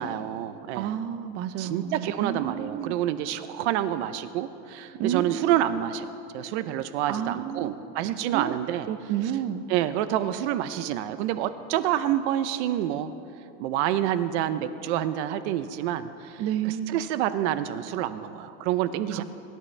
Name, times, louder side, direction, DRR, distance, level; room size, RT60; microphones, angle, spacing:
voice 1, 0.0-0.9 1.6-6.1 6.3-8.9 9.7-13.1 13.6-19.2, right 11 dB, 80° right, 12 dB, 0.7 m, -28 dB
voice 2, 0.7-3.0 4.9-5.7 7.1-7.9 8.3-8.5 8.9-9.6 16.4-17.0 19.1-19.2, right 10 dB, 45° right, 11 dB, 0.7 m, -31 dB
23.0 x 12.0 x 3.3 m, 2.9 s
supercardioid pair, 140°, 34 cm